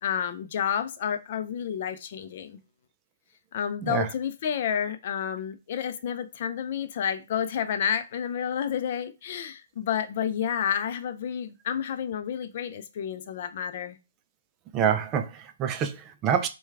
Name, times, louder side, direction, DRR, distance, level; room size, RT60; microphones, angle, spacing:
voice 1, 0.0-2.6 3.5-14.0, left 8 dB, 50° left, 0.5 m, -30 dB
voice 2, 14.7-16.5, right 8 dB, 25° right, 0.4 m, -26 dB
4.5 x 2.3 x 3.4 m
hypercardioid pair, 135°, 0 cm